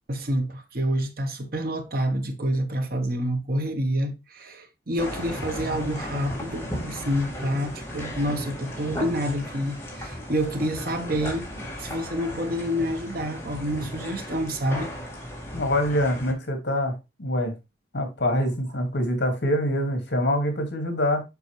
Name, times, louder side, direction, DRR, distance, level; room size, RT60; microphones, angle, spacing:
voice 1, 0.1-14.9 15.5-15.6, equal, 55° right, 1.1 m, -28 dB
sound 1, 5.0-16.3, equal, 15° left, 2.0 m, -35 dB
voice 2, 15.5-17.5 17.9-21.2, left 1 dB, 65° left, 2.0 m, -25 dB
7.0 x 5.5 x 3.2 m
head